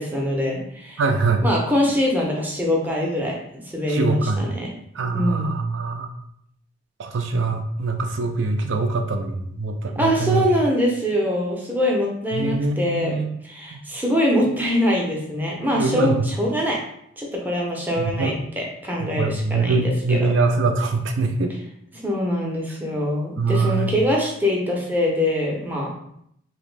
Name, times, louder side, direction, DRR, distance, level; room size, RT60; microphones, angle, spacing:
voice 1, 0.0-1.0 1.4-4.7 5.1-5.5 10.0-13.2 13.4-16.8 17.2-20.3 22.0-25.9, left 1 dB, 10° right, -2 dB, 0.5 m, -23 dB
voice 2, 1.0-1.4 3.9-4.5 4.9-6.1 7.0-10.5 12.3-13.3 13.7-13.8 15.7-16.3 18.0-18.3 19.0-21.5 22.8-23.0 23.4-24.0, right 3 dB, 70° right, 5 dB, 0.4 m, -23 dB
2.9 x 2.5 x 3.2 m, 0.72 s
head